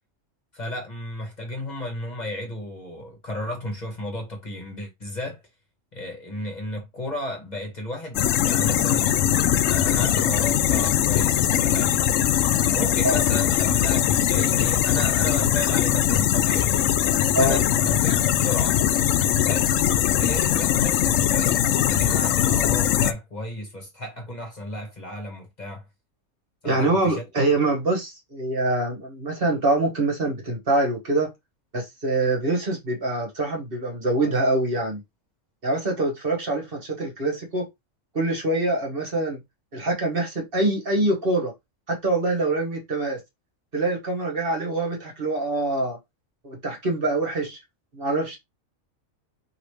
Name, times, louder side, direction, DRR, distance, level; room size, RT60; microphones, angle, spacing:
voice 1, 0.5-5.4 5.9-9.1 9.6-12.0 12.7-16.8 17.4-18.8 19.5-19.7 20.1-25.9 26.6-27.2, left 1 dB, 35° left, 1.4 m, -34 dB
sound 1, 8.1-23.1, left 10 dB, 75° left, 0.9 m, -21 dB
voice 2, 26.6-31.3 31.7-35.0 35.6-37.7 38.1-39.4 39.7-41.5 41.9-43.2 43.7-46.0 46.4-47.6 47.9-48.4, right 2 dB, 45° right, 1.4 m, -24 dB
5.0 x 3.0 x 3.1 m
omnidirectional pair, 1.4 m